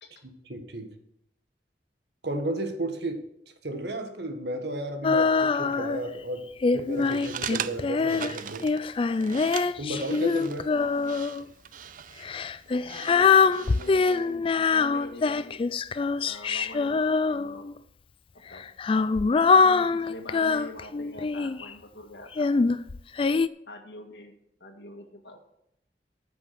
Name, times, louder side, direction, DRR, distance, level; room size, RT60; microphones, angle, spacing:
voice 1, 0.2-0.9 2.2-3.2 3.6-6.4 6.7-8.7 9.8-10.7, right 1 dB, 65° right, 5 dB, 1.7 m, -33 dB
Female singing, 5.0-6.1 6.6-11.4 12.2-17.8 18.5-21.7 22.3-23.5, left 4 dB, 30° left, 0.3 m, -24 dB
sound 1, 6.9-14.3, right 9 dB, 50° right, 0.4 m, -40 dB
voice 2, 10.7-11.2 12.7-15.6 16.2-17.7 18.3-18.7 19.5-22.5 23.7-25.4, left 1 dB, 70° left, 4 dB, 1.9 m, -44 dB
14.0 x 6.2 x 5.9 m, 0.77 s
head